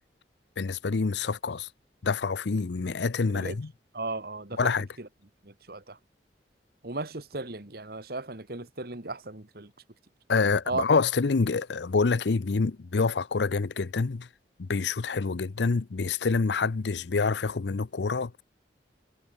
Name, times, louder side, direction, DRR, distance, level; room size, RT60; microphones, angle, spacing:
voice 1, 0.6-1.7 2.0-3.7 4.6-4.9 10.3-14.3 14.6-18.4, left 4 dB, 80° left, 0.6 m, -27 dB
voice 2, 3.9-4.7 5.0-5.1 5.4-6.0 6.8-9.7 10.7-10.8, right 2 dB, 60° right, 2.0 m, -35 dB
head